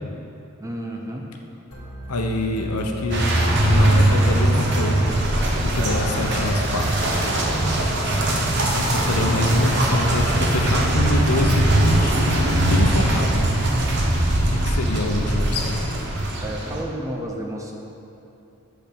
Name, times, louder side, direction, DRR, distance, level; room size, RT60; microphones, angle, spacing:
voice 1, 0.6-1.3 15.4-15.6 16.4-17.7, right 1 dB, 15° right, 0 dB, 0.7 m, -32 dB
sound 1, 1.7-7.4, equal, 70° left, 1.6 m, -36 dB
voice 2, 2.1-3.3 3.7-5.2 5.6-7.2 8.7-13.4 14.5-15.8, left 1 dB, 90° left, 3 dB, 0.8 m, -25 dB
sound 2, 3.1-16.8, right 1 dB, 50° right, 1.0 m, -21 dB
8.1 x 4.4 x 6.8 m, 2.8 s
head